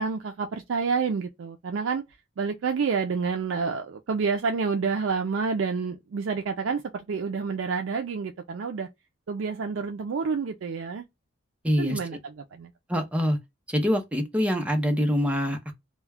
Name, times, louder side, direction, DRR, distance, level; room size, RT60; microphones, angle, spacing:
voice 1, 0.0-2.0 2.4-8.9 9.3-11.0 11.8-12.7, right 5 dB, 70° right, 0.4 m, -28 dB
voice 2, 11.6-12.0 12.9-13.4 13.7-15.7, equal, 5° right, 0.6 m, -25 dB
2.2 x 2.1 x 3.3 m
head